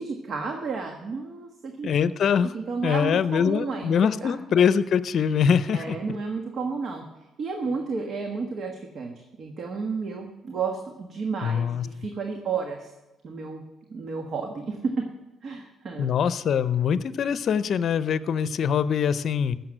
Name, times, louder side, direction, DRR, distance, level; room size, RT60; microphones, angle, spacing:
voice 1, 0.0-1.9 2.5-3.9 4.2-4.3 5.7-7.0 7.4-12.9 13.2-13.6 13.9-14.9 15.4-16.1, right 4 dB, 55° right, 3 dB, 1.4 m, -32 dB
voice 2, 1.8-2.5 2.8-6.0 11.4-11.9 16.0-19.6, left 7 dB, 60° left, 14 dB, 0.6 m, -23 dB
15.5 x 6.8 x 7.7 m, 1.0 s
cardioid pair, 90°, 0 cm